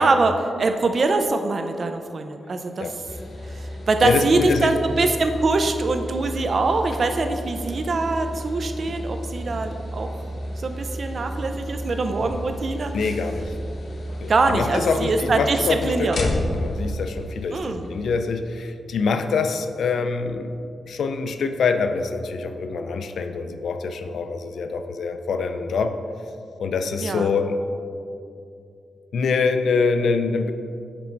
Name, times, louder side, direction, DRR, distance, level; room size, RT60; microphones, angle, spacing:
voice 1, 0.0-2.9 3.5-10.1 10.6-12.9 14.3-16.2 17.5-17.9 27.0-27.3, right 3 dB, 50° right, 6 dB, 0.5 m, -23 dB
sound 1, 3.1-18.6, equal, 55° left, 0.9 m, -32 dB
voice 2, 4.0-4.7 12.9-13.5 14.2-20.5 20.9-25.9 26.6-27.6 29.1-30.5, left 4 dB, 80° left, 8 dB, 0.4 m, -25 dB
6.0 x 5.2 x 4.5 m, 2.5 s
wide cardioid pair, 105°, 0 cm